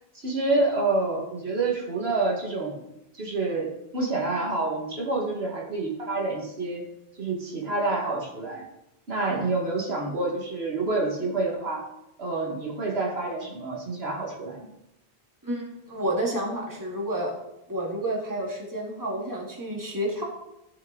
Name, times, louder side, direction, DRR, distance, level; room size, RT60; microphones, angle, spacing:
voice 1, 0.1-2.8 3.2-6.8 7.2-8.7 9.1-11.8 12.2-14.7, right 3 dB, 70° right, -2 dB, 2.1 m, -28 dB
voice 2, 15.4-17.3 17.7-20.2, right 1 dB, 15° right, -2 dB, 2.0 m, -30 dB
14.0 x 6.0 x 3.9 m, 0.86 s
omnidirectional pair, 1.1 m